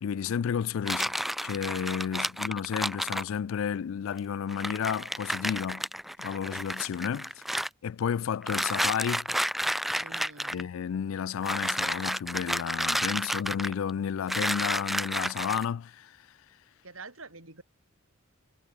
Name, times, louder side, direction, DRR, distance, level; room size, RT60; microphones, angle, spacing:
voice 1, 0.0-1.2 1.4-5.8 6.2-7.3 7.8-9.3 10.5-16.2, left 8 dB, 70° left, 0.3 m, -32 dB
sound 1, 0.8-3.3 4.2-4.3 4.5-7.7 8.4-10.6 11.4-13.9 14.3-15.6, equal, ahead, 0.4 m, -31 dB
voice 2, 10.0-10.7 16.8-17.6, right 3 dB, 70° right, 6.1 m, -47 dB
head